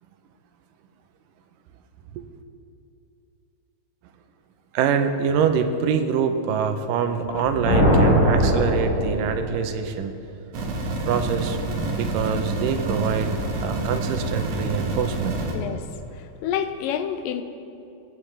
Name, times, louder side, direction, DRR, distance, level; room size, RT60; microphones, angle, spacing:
voice 1, 4.7-10.1 11.1-11.6 11.9-13.3 13.6-15.4, right 7 dB, 85° right, 8 dB, 2.4 m, -25 dB
Thunder, 7.2-9.6, equal, 75° left, 3.5 m, -20 dB
sound 1, 10.5-15.5, right 2 dB, 70° right, 2.6 m, -28 dB
voice 2, 15.5-15.9 16.1-17.4, left 9 dB, 90° left, 9 dB, 2.4 m, -28 dB
21.5 x 9.1 x 3.3 m, 2.8 s
omnidirectional pair, 3.8 m